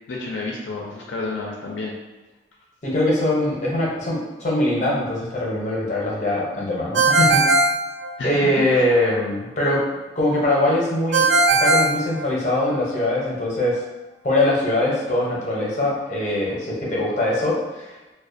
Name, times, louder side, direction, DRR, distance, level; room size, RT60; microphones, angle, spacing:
voice 1, 0.1-1.9 8.2-8.9, left 3 dB, 80° left, -2 dB, 0.4 m, -30 dB
voice 2, 2.8-7.5 8.2-9.8 10.2-11.3 11.6-13.8 14.2-17.9, left 1 dB, 40° left, -4 dB, 0.6 m, -22 dB
Ringtone, 6.9-8.6 11.1-12.8, right 2 dB, 80° right, 0.4 m, -19 dB
2.3 x 2.1 x 2.5 m, 1.1 s
head